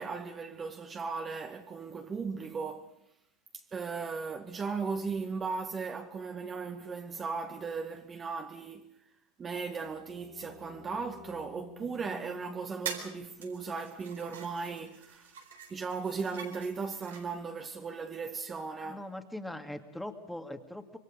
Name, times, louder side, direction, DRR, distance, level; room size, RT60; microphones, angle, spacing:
voice 1, 0.0-2.9 3.5-8.9 9.4-19.1, right 5 dB, 25° right, 1.9 m, -37 dB
sound 1, 9.6-15.1, left 7 dB, 50° left, 2.7 m, -55 dB
sound 2, 12.2-12.3 12.9-13.2 13.4-17.3, right 7 dB, 85° right, 4.0 m, -44 dB
voice 2, 18.8-21.0, left 1 dB, 5° left, 2.4 m, -41 dB
26.0 x 22.5 x 5.2 m
hypercardioid pair, 95°, 0 cm